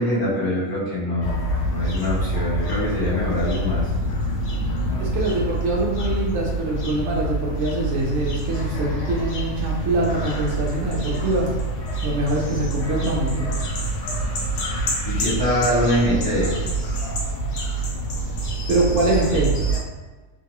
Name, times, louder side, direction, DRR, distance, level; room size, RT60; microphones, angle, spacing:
voice 1, 0.0-3.9 4.9-5.0 15.0-16.5, left 1 dB, 15° left, -9 dB, 0.9 m, -23 dB
sound 1, 1.2-19.8, right 2 dB, 75° left, 1.1 m, -26 dB
voice 2, 5.0-11.5 12.0-13.5 18.7-19.5, right 1 dB, 60° right, -3 dB, 1.0 m, -24 dB
2.9 x 2.5 x 2.9 m, 1.2 s
omnidirectional pair, 1.5 m